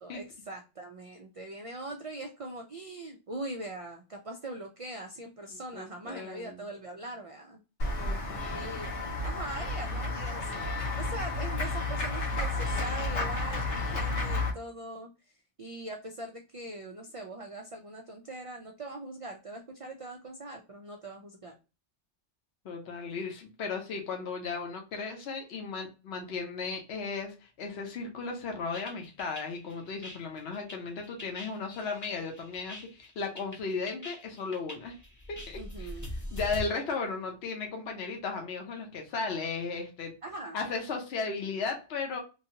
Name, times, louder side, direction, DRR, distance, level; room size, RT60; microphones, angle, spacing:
voice 1, 0.0-7.6 8.5-10.5 11.0-15.1 15.6-21.5 35.5-36.1 40.2-40.6, right 2 dB, 55° right, 0.3 m, -41 dB
voice 2, 5.5-6.7 8.0-8.7 22.6-35.0 35.3-35.9 36.3-40.2 40.5-42.2, left 4 dB, 65° left, 1.0 m, -36 dB
Run / Walk footsteps / Bell, 7.8-14.5, left 2 dB, 90° left, 1.3 m, -32 dB
sound 1, 28.7-36.6, left 1 dB, 20° left, 0.8 m, -43 dB
3.1 x 2.6 x 2.7 m
omnidirectional pair, 1.2 m